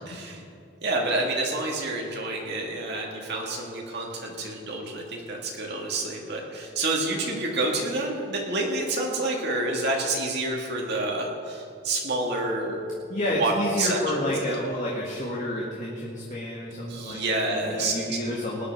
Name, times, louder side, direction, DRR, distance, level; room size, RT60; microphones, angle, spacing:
voice 1, 0.1-0.4 0.8-12.8 13.4-13.5 13.8-14.0 16.7-17.9, right 2 dB, 55° right, -1 dB, 1.8 m, -28 dB
voice 2, 13.1-17.2 17.5-18.6, left 1 dB, 35° left, -4 dB, 1.8 m, -30 dB
19.5 x 9.9 x 4.6 m, 2.6 s
head